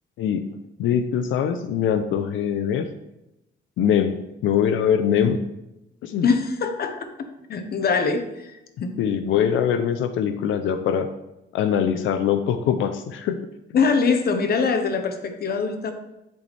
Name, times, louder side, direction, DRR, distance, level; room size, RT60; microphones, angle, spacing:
voice 1, 0.8-2.9 3.8-4.2 4.4-5.4 6.0-6.2 9.0-11.1 11.5-13.4, left 8 dB, 80° left, 9 dB, 0.5 m, -22 dB
voice 2, 6.2-8.9 13.7-15.9, left 5 dB, 50° left, 7 dB, 1.0 m, -23 dB
10.5 x 4.1 x 3.3 m, 0.90 s
cardioid pair, 90°, 20 cm